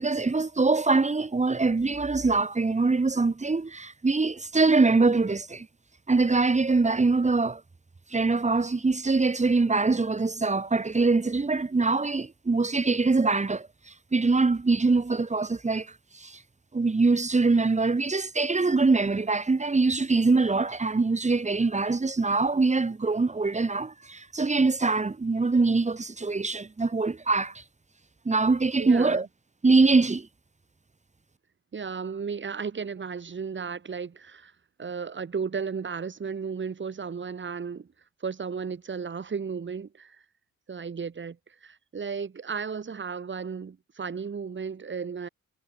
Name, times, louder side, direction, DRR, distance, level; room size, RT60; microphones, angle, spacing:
voice 1, 0.0-5.7 6.1-7.6 8.1-16.4 16.7-27.6 28.3-29.3 29.6-30.3, right 3 dB, 25° right, 4.1 m, -23 dB
voice 2, 28.8-29.2 31.7-34.5 34.8-37.9 38.2-40.2 40.7-45.3, right 5 dB, 40° right, 6.4 m, -34 dB
cardioid pair, 90°, 30 cm